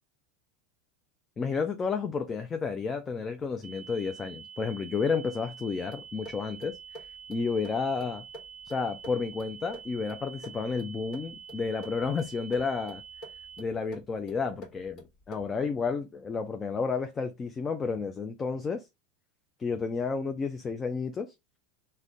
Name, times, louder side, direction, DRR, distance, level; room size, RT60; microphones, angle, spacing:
voice 1, 1.4-6.8 7.3-8.2 8.7-13.0 13.6-18.8 19.6-21.3, left 5 dB, 25° left, 0.3 m, -31 dB
sound 1, 3.6-13.6, right 7 dB, 50° right, 0.5 m, -47 dB
sound 2, 5.9-15.6, right 1 dB, 45° left, 1.2 m, -50 dB
2.4 x 2.1 x 3.5 m
supercardioid pair, 115°, 0 cm